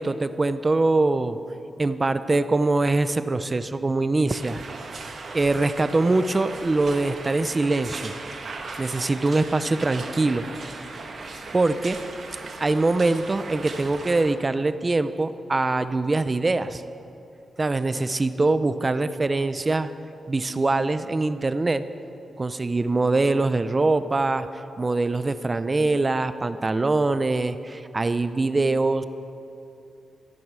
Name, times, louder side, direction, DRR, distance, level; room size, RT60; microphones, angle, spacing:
voice 1, 0.0-1.4 1.8-4.6 5.3-8.1 8.8-10.5 11.5-12.0 12.6-16.8 17.6-19.9 20.3-21.8 22.4-24.5 24.8-29.0, right 2 dB, 30° right, 12 dB, 0.6 m, -23 dB
sound 1, 4.3-14.4, right 3 dB, 55° right, 1.5 m, -38 dB
13.5 x 10.5 x 6.2 m, 2.7 s
cardioid pair, 85°, 0 cm